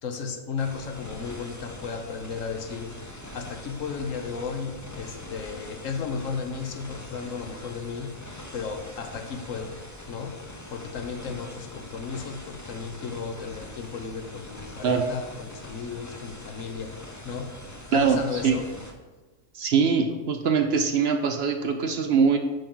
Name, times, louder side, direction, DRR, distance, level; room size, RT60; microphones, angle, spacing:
voice 1, 0.0-3.1 3.3-8.2 8.5-9.8 10.1-10.4 10.7-17.0 17.2-18.7, left 5 dB, 70° left, 6 dB, 1.2 m, -34 dB
sound 1, 0.6-18.9, left 1 dB, 20° left, 0.6 m, -43 dB
voice 2, 17.9-18.6 19.6-22.4, right 6 dB, 60° right, 6 dB, 0.8 m, -22 dB
8.9 x 5.5 x 3.8 m, 1.2 s
omnidirectional pair, 1.4 m